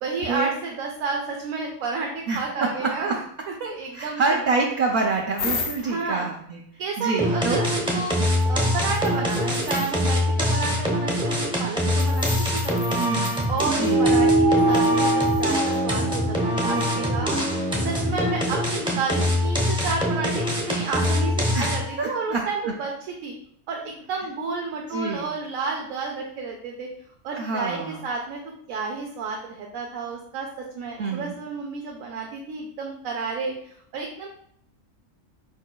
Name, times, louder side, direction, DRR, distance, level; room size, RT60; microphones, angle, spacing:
voice 1, 0.0-3.2 3.6-4.2 5.8-6.3 6.8-8.2 8.5-13.1 13.5-17.4 17.8-22.9 23.2-23.4 23.7-26.9 27.2-28.4 28.7-34.3, right 4 dB, 85° right, 0 dB, 1.1 m, -31 dB
voice 2, 2.3-3.1 3.9-6.6 7.0-7.7 12.9-13.5 13.7-14.0 16.6-17.5 21.5-21.7 22.0-22.7 24.9-25.3 27.3-28.0 31.0-31.3, right 3 dB, 55° right, -2 dB, 0.6 m, -27 dB
sound 1, 5.4-6.0 8.4-8.5 8.9-10.0 12.0-13.9 14.7-15.8 16.8-16.9, left 4 dB, 55° left, 0.8 m, -35 dB
sound 2, 7.2-22.0, left 1 dB, 5° right, 0.5 m, -24 dB
sound 3, 13.8-18.6, right 2 dB, 85° left, 1.6 m, -23 dB
4.9 x 4.5 x 2.2 m, 0.66 s
omnidirectional pair, 1.4 m